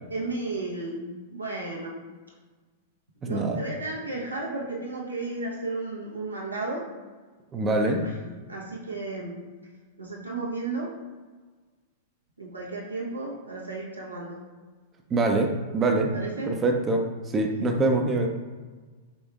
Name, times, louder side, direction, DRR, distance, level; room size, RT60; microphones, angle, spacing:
voice 1, 0.1-2.0 3.2-6.9 7.9-9.4 10.0-11.0 12.4-14.4 16.1-16.6, right 3 dB, 90° right, -4 dB, 1.0 m, -34 dB
voice 2, 3.2-3.6 7.5-8.0 15.1-16.1 16.5-18.3, right 2 dB, 25° right, 3 dB, 0.6 m, -24 dB
5.2 x 3.4 x 2.4 m, 1.4 s
figure-of-eight pair, 100°, 0 cm